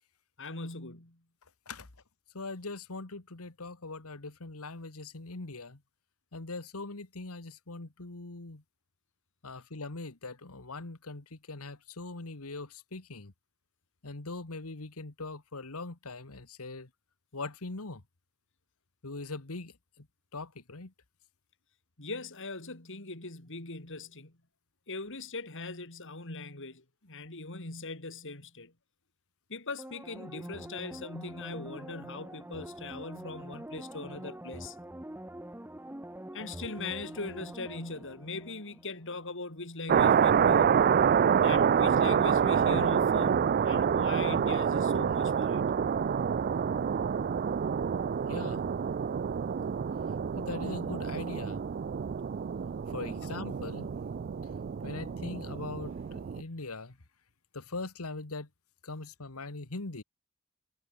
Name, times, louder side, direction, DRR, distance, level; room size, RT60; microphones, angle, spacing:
voice 1, 0.4-1.2 22.0-24.3 24.9-28.7 29.5-34.8 36.3-40.9 41.4-45.6, left 3 dB, 60° left, 3.9 m, -40 dB
voice 2, 2.3-5.8 6.3-8.6 9.4-13.3 14.0-16.9 17.3-18.0 19.0-20.1 20.3-20.9 48.3-48.7 50.4-51.6 52.9-53.9 54.8-57.0 57.5-58.5 58.8-60.0, left 3 dB, 80° left, 1.7 m, -41 dB
sound 1, 29.8-39.2 39.5-39.6, right 1 dB, 10° right, 1.3 m, -45 dB
sound 2, 39.9-56.4, right 7 dB, 45° right, 0.3 m, -27 dB
head